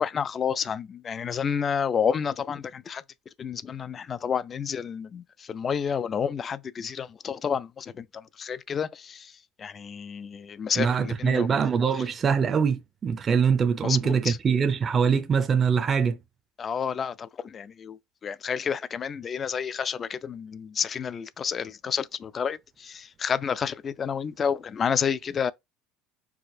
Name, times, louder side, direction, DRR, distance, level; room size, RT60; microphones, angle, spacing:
voice 1, 0.0-3.0 3.4-11.5 13.8-14.4 16.6-25.5, left 7 dB, 30° left, 0.3 m, -30 dB
voice 2, 10.8-16.2, right 6 dB, 30° right, 0.5 m, -23 dB
4.7 x 4.0 x 2.6 m
cardioid pair, 135°, 0 cm